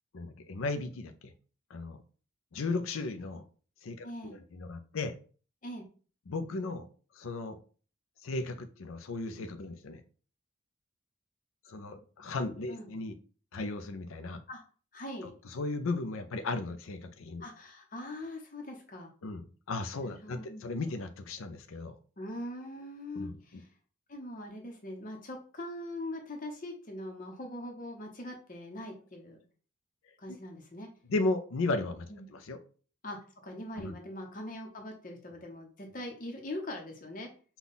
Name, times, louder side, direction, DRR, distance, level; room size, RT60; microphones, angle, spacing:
voice 1, 0.1-1.3 1.7-2.0 2.5-3.4 3.8-5.1 6.3-6.9 7.1-7.6 8.2-10.0 11.7-13.2 13.5-14.4 15.5-17.4 19.2-21.9 23.2-23.4 31.1-32.6 33.8-34.0, left 3 dB, 80° left, 8 dB, 0.5 m, -35 dB
voice 2, 4.0-4.4 5.6-5.8 12.7-12.9 14.5-14.6 14.9-15.3 17.4-19.1 20.0-20.7 22.2-23.7 24.1-29.4 30.2-30.9 32.1-32.2 33.0-37.3, left 1 dB, 40° left, 2 dB, 0.8 m, -42 dB
5.4 x 2.3 x 4.0 m, 0.40 s
head